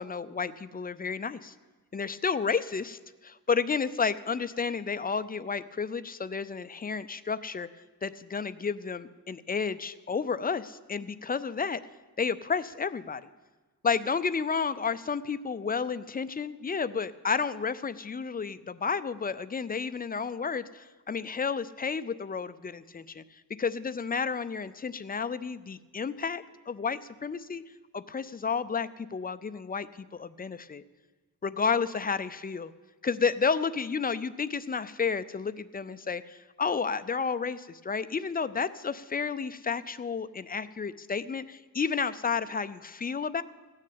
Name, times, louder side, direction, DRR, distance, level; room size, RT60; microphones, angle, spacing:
voice 1, 0.0-1.5 1.9-3.0 3.2-7.7 8.0-11.8 12.2-13.2 13.8-23.2 23.6-27.6 27.9-30.8 31.4-32.7 33.0-43.4, left 5 dB, 25° left, 13 dB, 0.4 m, -31 dB
15.5 x 6.5 x 8.5 m, 1.3 s
wide cardioid pair, 130°, 35 cm